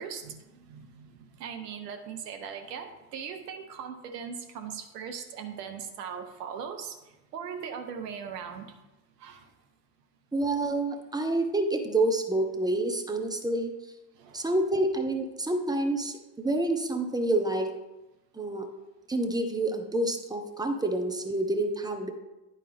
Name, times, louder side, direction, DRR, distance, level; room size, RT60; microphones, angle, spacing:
voice 1, 0.0-7.0 7.3-8.7 9.2-9.5 14.1-14.5, right 7 dB, 75° right, 5 dB, 1.0 m, -39 dB
voice 2, 10.3-13.7 14.3-17.7 18.3-18.7 19.1-22.1, right 2 dB, 10° right, 5 dB, 1.0 m, -28 dB
10.0 x 4.6 x 3.5 m, 1.0 s
figure-of-eight pair, 55°, 48 cm